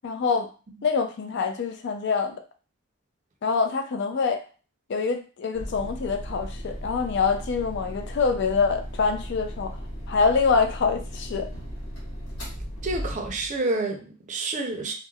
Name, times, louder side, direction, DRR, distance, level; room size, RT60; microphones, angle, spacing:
voice 1, 0.0-0.5 0.8-2.4 3.4-4.4 4.9-9.8 10.1-11.5, left 5 dB, 55° left, 0.4 m, -25 dB
sound 1, 5.5-13.6, equal, 90° left, 1.1 m, -36 dB
voice 2, 12.8-14.9, right 2 dB, 35° right, 0.5 m, -29 dB
3.0 x 2.1 x 2.3 m
head